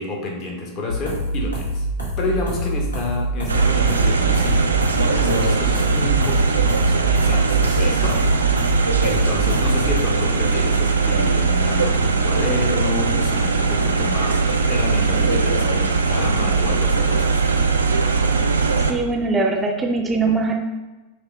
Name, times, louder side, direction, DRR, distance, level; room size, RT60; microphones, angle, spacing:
voice 1, 0.0-1.8 2.2-8.2 8.6-17.7, left 3 dB, 35° left, 0 dB, 0.9 m, -29 dB
sound 1, 0.9-10.0, right 1 dB, 85° left, 1.1 m, -26 dB
sound 2, 3.5-18.9, right 4 dB, 75° right, 0.3 m, -19 dB
voice 2, 18.8-20.5, right 3 dB, 15° right, 1 dB, 0.5 m, -21 dB
5.9 x 2.1 x 3.5 m, 1.1 s
figure-of-eight pair, 90°, 0 cm